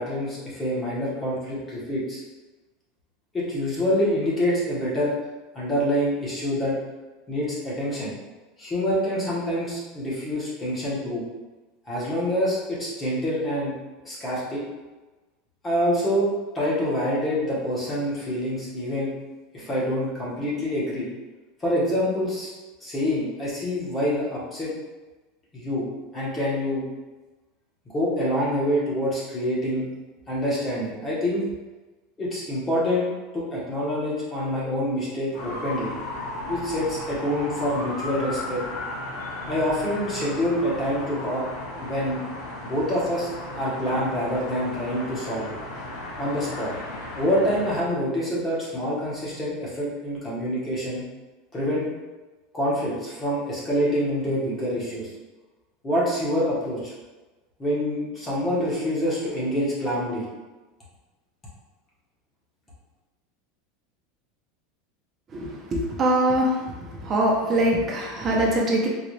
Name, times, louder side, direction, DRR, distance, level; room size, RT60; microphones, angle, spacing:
voice 1, 0.0-2.2 3.3-5.1 5.5-6.8 7.3-8.1 8.6-11.3 11.9-13.7 14.0-14.6 15.6-19.1 19.5-21.1 21.6-22.5 22.8-24.7 25.5-25.9 26.1-26.8 27.9-29.9 30.3-31.4 32.2-35.9 36.5-38.6 39.5-41.4 41.8-42.2 42.6-43.3 43.6-45.6 46.2-46.7 47.2-51.0 51.5-51.9 52.5-55.1 55.8-56.9 57.6-60.3, equal, 15° left, -7 dB, 1.0 m, -26 dB
sound 1, 35.3-48.0, left 2 dB, 55° left, 1.4 m, -35 dB
voice 2, 65.3-66.6 67.0-68.9, right 1 dB, 25° right, -1 dB, 0.6 m, -23 dB
3.9 x 2.4 x 3.1 m, 1.2 s
supercardioid pair, 165°, 0 cm